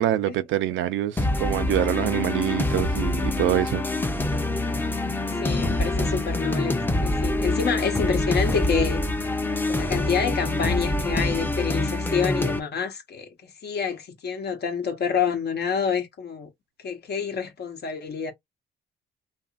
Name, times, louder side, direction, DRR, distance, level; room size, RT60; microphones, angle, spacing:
voice 1, 0.0-3.8, right 13 dB, 80° right, 0.5 m, -25 dB
sound 1, 1.2-12.6, left 2 dB, 10° left, 0.6 m, -25 dB
voice 2, 5.4-9.0 9.7-16.5 16.8-18.3, left 6 dB, 55° left, 0.9 m, -28 dB
2.8 x 2.5 x 2.4 m
cardioid pair, 90°, 20 cm